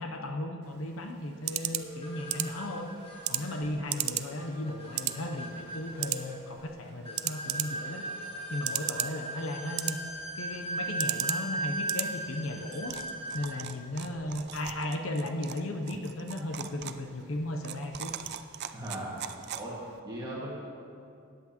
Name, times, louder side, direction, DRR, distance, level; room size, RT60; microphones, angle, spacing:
voice 1, 0.0-2.9 3.3-8.0 8.5-10.0 10.4-13.0 13.3-18.1, left 1 dB, 70° left, 4 dB, 0.7 m, -36 dB
sound 1, 0.6-20.0, right 13 dB, 50° right, 0.4 m, -38 dB
sound 2, 1.7-13.7, right 1 dB, 25° left, 1.6 m, -38 dB
voice 2, 18.7-19.1 19.5-19.8 20.0-20.5, right 1 dB, 20° right, -6 dB, 1.8 m, -37 dB
14.0 x 9.6 x 2.9 m, 2.5 s
head